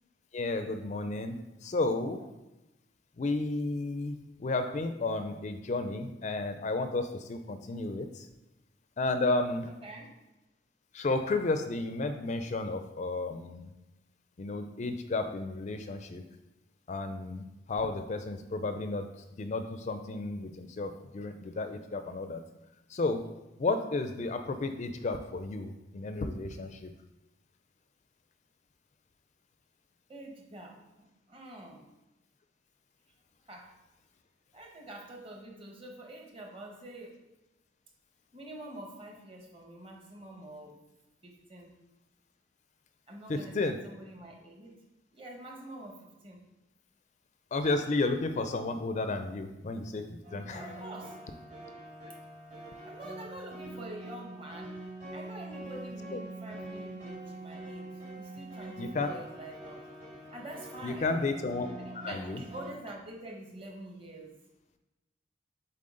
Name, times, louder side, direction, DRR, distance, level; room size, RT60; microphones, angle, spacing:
voice 1, 0.3-1.4 1.6-2.2 3.2-8.3 9.0-9.7 10.9-13.7 14.4-16.2 16.9-19.0 19.4-22.4 22.9-23.2 23.6-26.9 43.3-43.8 47.5-50.8 56.1-56.2 58.8-59.1 60.8-61.7 62.0-62.4, left 3 dB, 40° left, 8 dB, 0.4 m, -32 dB
voice 2, 9.6-10.1 30.1-30.8 31.3-31.8 33.5-33.7 34.5-37.2 38.3-40.8 41.2-41.7 43.1-44.8 45.1-46.4 50.6-51.2 52.8-54.8 55.1-59.8 60.3-61.1 61.8-64.4, right 1 dB, 30° right, 0 dB, 1.2 m, -46 dB
sound 1, 50.2-62.7, right 2 dB, 45° right, 2.1 m, -44 dB
7.6 x 4.0 x 3.8 m, 0.99 s
head